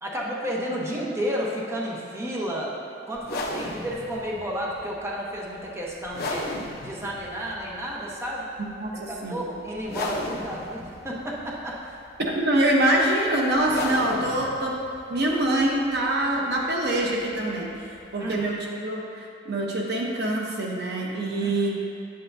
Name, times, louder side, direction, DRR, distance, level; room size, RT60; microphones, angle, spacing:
voice 1, 0.0-2.7 3.1-6.5 6.8-8.5 8.9-12.0 18.2-18.5 21.4-21.7, equal, 15° right, -4 dB, 0.9 m, -32 dB
sound 1, 3.2-18.5, left 2 dB, 55° left, 0.8 m, -37 dB
voice 2, 8.8-9.4 12.2-14.7 15.1-17.7 18.1-21.8, right 1 dB, 60° right, -1 dB, 0.9 m, -24 dB
9.1 x 7.9 x 2.7 m, 2.5 s
head